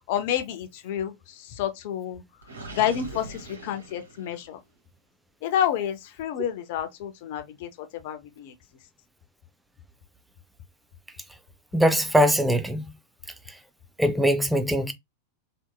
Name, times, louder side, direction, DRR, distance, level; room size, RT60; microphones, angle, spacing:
voice 1, 0.1-1.1 1.6-2.2 2.7-4.6 5.4-8.5, left 10 dB, 50° left, 0.5 m, -29 dB
Gurgling, 2.4-4.6, right 2 dB, 75° right, 1.0 m, -42 dB
voice 2, 11.7-12.9 14.0-14.9, equal, 5° right, 0.5 m, -21 dB
3.4 x 2.8 x 2.2 m
figure-of-eight pair, 90°, 0 cm